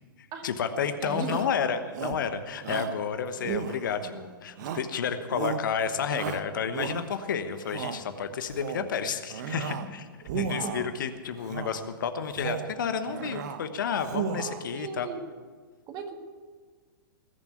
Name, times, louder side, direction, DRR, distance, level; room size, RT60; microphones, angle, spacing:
voice 1, 0.4-10.1 10.3-15.1, left 6 dB, 60° left, 9 dB, 1.2 m, -31 dB
voice 2, 1.0-1.4 3.4-3.5 4.0-4.4 9.8-9.9 10.4-10.7 14.4-15.2 15.9-16.2, right 5 dB, 30° right, 5 dB, 1.8 m, -38 dB
Shout, 1.2-1.6 1.9-2.3 2.6-3.0 3.4-4.1 4.6-5.0 5.3-5.7 6.1-7.2 7.6-8.0 8.4-8.9 9.3-9.9 10.2-10.9 11.4-11.8 12.2-12.8 13.1-13.6 13.9-14.7, right 8 dB, 55° right, 0.9 m, -35 dB
20.0 x 7.1 x 8.2 m, 1.5 s
figure-of-eight pair, 105°, 12 cm